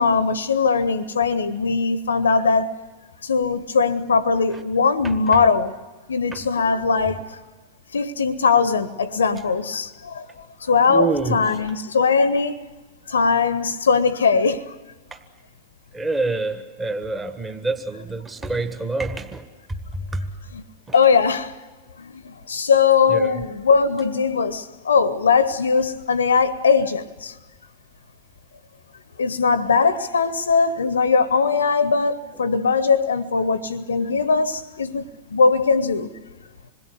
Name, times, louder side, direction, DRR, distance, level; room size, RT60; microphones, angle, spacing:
voice 1, 0.0-2.7 3.2-5.7 6.1-7.4 7.9-12.6 13.1-14.7 20.5-20.6 20.9-21.5 22.0-27.3 29.2-35.0 35.3-36.1, left 5 dB, 70° left, 0.8 m, -20 dB
voice 2, 10.9-11.4 15.9-19.4 19.7-20.3 23.1-23.4, right 3 dB, 15° right, 1.7 m, -26 dB
27.0 x 21.5 x 8.2 m
figure-of-eight pair, 90°, 0 cm